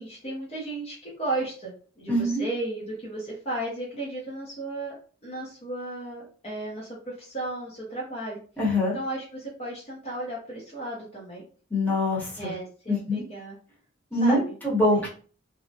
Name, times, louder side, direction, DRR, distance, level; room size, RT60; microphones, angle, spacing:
voice 1, 0.0-4.9 5.2-8.4 8.9-11.4 12.4-13.5 14.2-14.4 14.9-15.1, right 2 dB, 35° left, -4 dB, 0.7 m, -34 dB
voice 2, 2.1-2.4 8.6-9.0 11.7-12.5 12.9-13.2 14.1-15.1, left 1 dB, 10° left, -6 dB, 1.0 m, -24 dB
2.7 x 2.1 x 2.7 m, 0.40 s
head